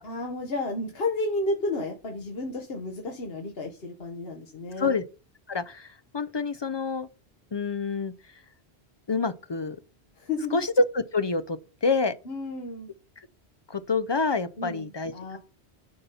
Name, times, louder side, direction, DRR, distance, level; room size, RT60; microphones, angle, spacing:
voice 1, 0.0-5.0 10.2-10.6 12.2-12.9 14.6-15.4, left 2 dB, 60° left, 1.4 m, -32 dB
voice 2, 5.5-5.9 6.1-7.1 7.5-8.1 9.1-9.8 10.5-12.1 13.7-15.4, left 3 dB, 45° left, 0.3 m, -27 dB
11.0 x 4.2 x 5.5 m
omnidirectional pair, 1.1 m